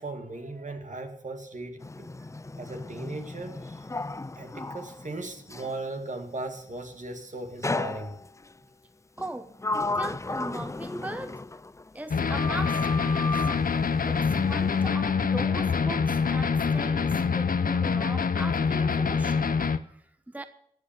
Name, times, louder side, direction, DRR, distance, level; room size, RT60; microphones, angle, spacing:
voice 1, 0.0-2.1 2.6-3.9 4.4-8.2, right 2 dB, 60° right, 5 dB, 2.1 m, -37 dB
Sliding door, 1.8-5.8 7.6-8.5 9.2-12.0 12.3-13.6, left 2 dB, 20° left, 0.4 m, -34 dB
voice 2, 9.2-11.4 11.9-13.5 14.0-20.4, right 1 dB, 10° right, 10 dB, 0.9 m, -39 dB
sound 1, 12.1-19.8, left 5 dB, 75° left, 0.7 m, -25 dB
14.5 x 8.1 x 7.2 m, 0.72 s
wide cardioid pair, 50°, 15 cm